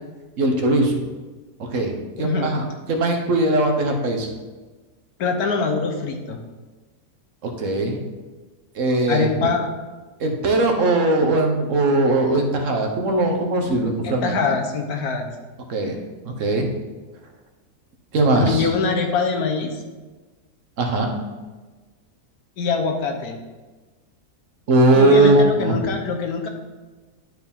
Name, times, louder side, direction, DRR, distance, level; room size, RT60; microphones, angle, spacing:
voice 1, 0.4-1.0 1.6-2.6 2.9-4.3 7.4-8.0 8.7-9.3 10.2-14.4 15.7-16.0 16.2-16.7 18.1-18.7 20.8-21.1 24.7-25.8, right 2 dB, 55° right, 3 dB, 1.3 m, -19 dB
voice 2, 2.2-2.6 5.2-6.4 9.1-9.7 14.0-15.3 18.4-19.8 22.6-23.4 24.9-26.5, left 5 dB, 70° left, 4 dB, 1.4 m, -23 dB
11.0 x 4.6 x 3.6 m, 1.3 s
omnidirectional pair, 1.7 m